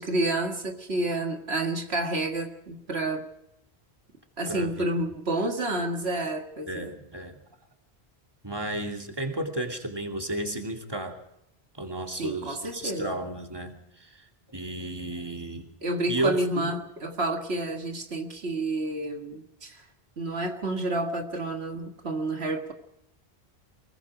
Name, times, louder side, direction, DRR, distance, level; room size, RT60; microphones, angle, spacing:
voice 1, 0.0-3.3 4.4-6.9 12.2-13.1 15.8-19.8 20.2-22.7, right 2 dB, 80° right, 4 dB, 2.1 m, -29 dB
voice 2, 4.5-4.8 6.7-7.4 8.4-11.2 11.8-15.7 16.1-16.7, right 1 dB, 25° right, 3 dB, 2.8 m, -33 dB
24.0 x 22.0 x 5.1 m, 0.83 s
omnidirectional pair, 1.1 m